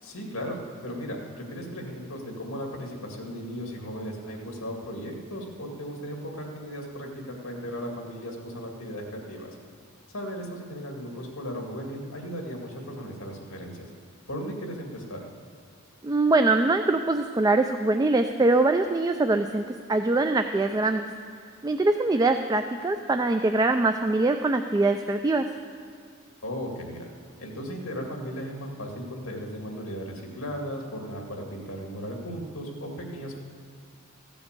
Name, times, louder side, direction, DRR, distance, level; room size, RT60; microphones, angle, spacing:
voice 1, 0.0-9.6 10.1-13.9 14.3-15.2 26.4-27.1 27.4-33.4, equal, 70° left, 1 dB, 2.2 m, -36 dB
voice 2, 16.0-19.6 19.9-21.1 21.6-25.5, right 2 dB, 15° right, 6 dB, 0.3 m, -23 dB
15.0 x 7.0 x 6.8 m, 2.2 s
head